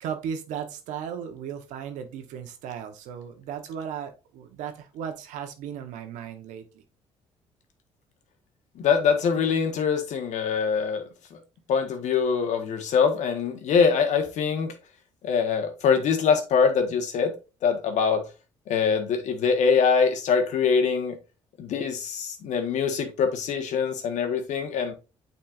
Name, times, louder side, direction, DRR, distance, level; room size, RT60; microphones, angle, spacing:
voice 1, 0.0-6.8, right 8 dB, 80° right, 1.2 m, -36 dB
voice 2, 8.8-11.0 11.3-11.4 11.7-14.7 15.2-17.3 17.6-18.2 18.7-21.2 21.6-24.9, left 6 dB, 70° left, 1.5 m, -23 dB
8.7 x 4.4 x 2.5 m
supercardioid pair, 70°, 13 cm